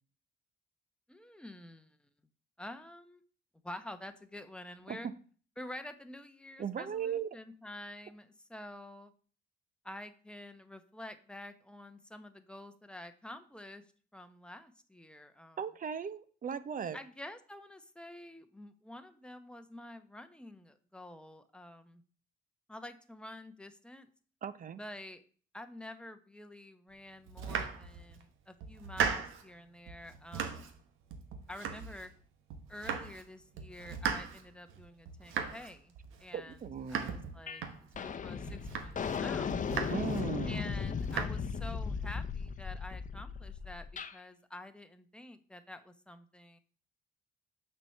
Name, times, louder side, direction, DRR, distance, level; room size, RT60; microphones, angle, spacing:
voice 1, 1.1-2.1 2.6-3.2 3.6-5.1 5.6-9.1 9.8-13.8 14.1-15.6 16.9-22.0 22.7-24.1 24.8-25.2 25.5-30.8 31.5-32.1 32.7-35.9 36.2-36.6 36.9-37.9 38.2-39.6 40.5-43.9 44.1-46.6, left 1 dB, 5° left, 8 dB, 0.9 m, -48 dB
voice 2, 6.6-7.3 15.6-17.0 24.4-24.8 36.3-37.1 39.9-40.6, right 7 dB, 45° right, 14 dB, 0.7 m, -37 dB
Domestic sounds home sounds, 27.3-28.2 28.6-29.5 29.9-30.8 31.1-32.2 32.5-33.3 33.5-38.1 38.5-39.2 39.5-40.2 40.6-41.2, right 6 dB, 85° right, 1.1 m, -38 dB
sound 1, 37.5-37.6 37.9-44.1, left 6 dB, 40° left, 0.7 m, -36 dB
6.0 x 4.6 x 6.5 m, 0.42 s
cardioid pair, 90°, 20 cm